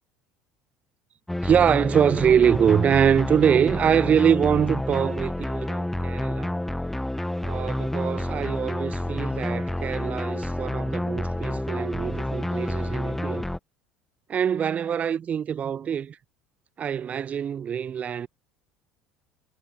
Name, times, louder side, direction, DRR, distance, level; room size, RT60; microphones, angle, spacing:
Space Chase, 1.3-13.6, left 1 dB, 5° left, 1.8 m, -29 dB
voice 1, 1.4-6.5 7.4-13.5 14.3-16.2 16.8-18.3, right 8 dB, 40° right, 1.5 m, -24 dB
hypercardioid pair, 75°, 4 cm